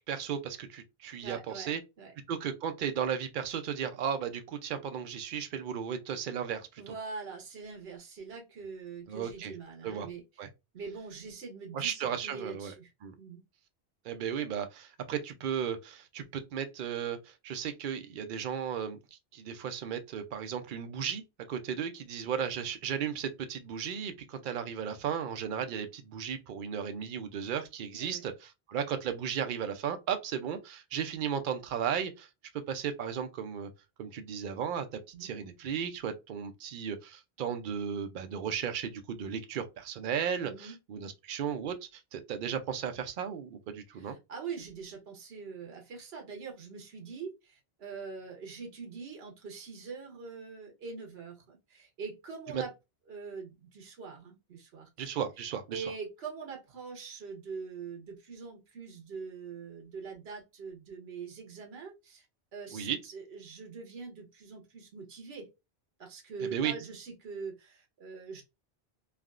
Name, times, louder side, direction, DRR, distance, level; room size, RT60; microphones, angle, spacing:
voice 1, 0.1-1.8 2.3-6.9 9.1-9.5 9.8-10.1 10.4-10.5 11.7-12.7 13.0-13.1 14.0-21.2 21.5-32.3 32.5-33.7 34.0-34.9 35.2-44.1 52.5-52.6 55.0-55.8 62.7-63.0 66.4-66.7, right 8 dB, 60° right, 0.7 m, -35 dB
voice 2, 1.2-2.1 6.8-10.2 10.7-12.9 13.2-13.4 27.9-28.2 35.1-35.3 40.4-40.7 43.9-52.7 53.1-55.1 55.7-62.3 62.5-65.5 66.0-68.4, right 5 dB, 75° right, 1.1 m, -43 dB
3.4 x 2.3 x 2.4 m
omnidirectional pair, 1.1 m